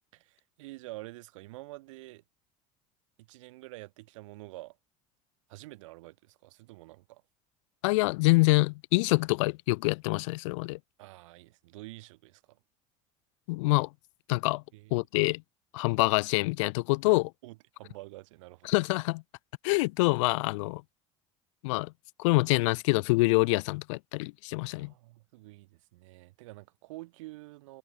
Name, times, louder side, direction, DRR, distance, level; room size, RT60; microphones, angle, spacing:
voice 1, 0.1-2.2 3.2-4.8 5.5-7.2 11.0-12.6 14.7-14.9 17.0-18.8 24.7-27.8, right 20 dB, 85° right, 4.6 m, -48 dB
voice 2, 7.8-10.8 13.5-13.9 14.3-14.6 14.9-15.4 15.7-17.3 18.6-19.2 19.6-20.8 21.6-21.9 22.2-24.9, left 24 dB, 80° left, 0.8 m, -26 dB
hypercardioid pair, 80°, 16 cm